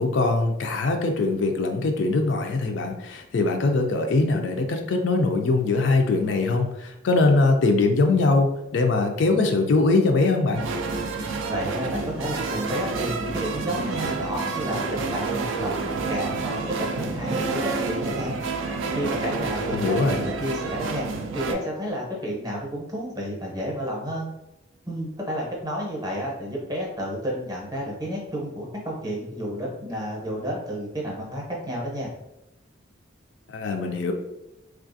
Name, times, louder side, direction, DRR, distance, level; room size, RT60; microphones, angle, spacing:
voice 1, 0.0-10.6 19.7-20.2 33.5-34.1, left 3 dB, 60° left, 4 dB, 0.4 m, -22 dB
sound 1, 10.5-21.5, right 4 dB, 75° right, 0.4 m, -29 dB
voice 2, 11.5-18.4 18.9-21.1 21.3-24.3 24.8-32.1, equal, 20° right, -3 dB, 0.7 m, -31 dB
3.2 x 2.4 x 2.5 m, 0.88 s
head